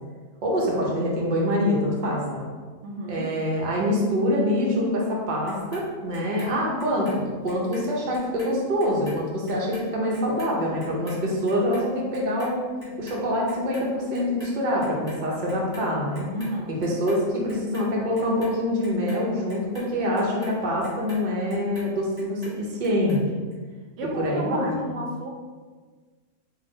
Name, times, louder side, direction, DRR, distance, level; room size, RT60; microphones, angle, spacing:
voice 1, 0.4-2.5 3.1-12.7 13.0-16.3 16.7-23.2 24.2-24.9, equal, 45° right, -3 dB, 0.8 m, -25 dB
voice 2, 2.8-3.4 16.3-16.8 24.0-25.3, equal, 80° right, 0 dB, 1.0 m, -32 dB
Clock, 5.5-7.9 8.1-14.5 14.8-15.9 16.1-17.2 17.5-21.9 22.2-23.2 23.5-23.6, equal, 20° right, 1.0 m, -45 dB
3.9 x 2.4 x 3.8 m, 1.4 s
omnidirectional pair, 1.3 m